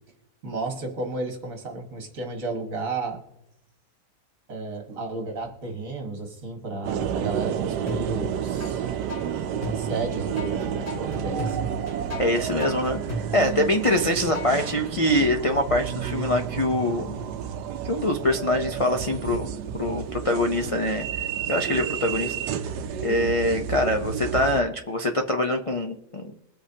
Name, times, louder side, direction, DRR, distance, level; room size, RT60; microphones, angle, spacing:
voice 1, 0.4-3.2 4.5-8.8 9.5-11.6 13.6-13.8, right 3 dB, 50° right, 3 dB, 2.0 m, -33 dB
sound 1, 6.8-24.6, right 9 dB, 75° right, 1.2 m, -31 dB
sound 2, 7.9-8.7 9.1-14.7, equal, 80° left, 3.5 m, -34 dB
voice 2, 12.2-17.2 17.8-19.5 19.8-22.3 23.0-26.2, left 1 dB, 40° left, 4 dB, 0.4 m, -24 dB
21.5 x 8.4 x 2.8 m, 0.87 s
omnidirectional pair, 1.8 m